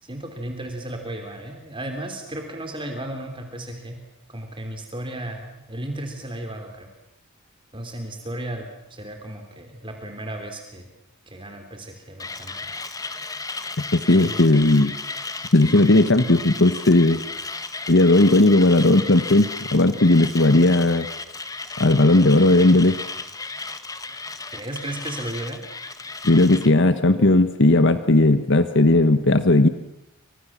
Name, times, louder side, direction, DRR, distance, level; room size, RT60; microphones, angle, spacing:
voice 1, 0.0-4.0 4.3-6.9 7.7-10.9 11.3-12.9 14.2-14.5 24.5-25.6, right 1 dB, 25° right, 4 dB, 3.3 m, -34 dB
Mechanisms, 12.2-26.7, left 3 dB, 15° left, 1.5 m, -34 dB
voice 2, 13.9-14.9 15.5-17.2 17.9-21.1 21.8-23.0 26.2-29.7, left 2 dB, 60° left, 11 dB, 1.3 m, -16 dB
30.0 x 25.5 x 7.4 m, 0.86 s
head